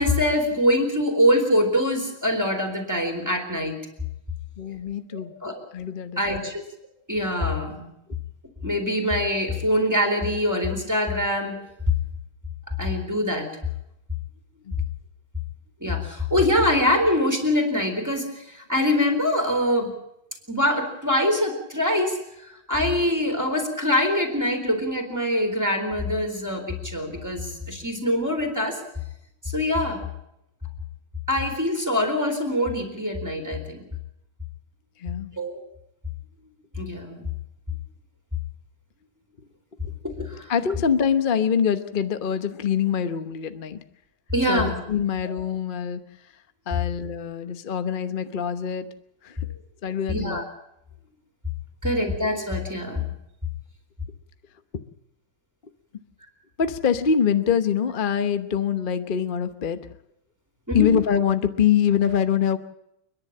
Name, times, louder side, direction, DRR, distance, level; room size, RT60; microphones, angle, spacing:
voice 1, 0.0-3.8 5.1-5.6 6.2-6.6 7.1-7.9 8.6-11.6 12.8-13.5 15.8-19.9 20.5-28.8 29.4-30.1 31.3-33.8 35.4-35.6 36.8-37.3 40.0-40.5 44.3-44.8 50.1-50.4 51.8-53.0 60.7-60.9, left 1 dB, 10° right, 4 dB, 4.0 m, -24 dB
voice 2, 4.6-5.3 5.7-6.4 14.7-14.8 35.0-35.3 40.5-43.8 44.5-46.0 46.7-48.9 49.2-49.4 49.8-50.4 56.6-59.9 60.7-62.6, left 7 dB, 40° left, 10 dB, 0.7 m, -24 dB
29.5 x 11.0 x 8.7 m, 0.82 s
omnidirectional pair, 2.3 m